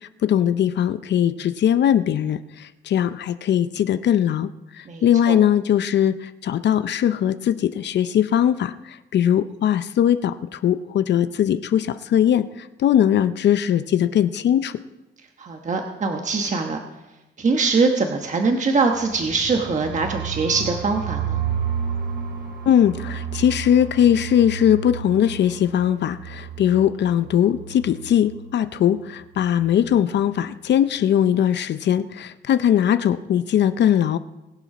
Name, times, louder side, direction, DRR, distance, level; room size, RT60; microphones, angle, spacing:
voice 1, 0.2-14.8 22.7-34.2, left 10 dB, 65° left, 12 dB, 0.6 m, -20 dB
voice 2, 4.9-5.4 15.4-16.8 17.4-21.4, right 4 dB, 40° right, 3 dB, 1.2 m, -22 dB
sound 1, 19.0-28.7 28.9-29.1 29.3-29.8, right 7 dB, 65° right, 3.4 m, -32 dB
21.0 x 7.1 x 5.9 m, 1.0 s
cardioid pair, 115°, 19 cm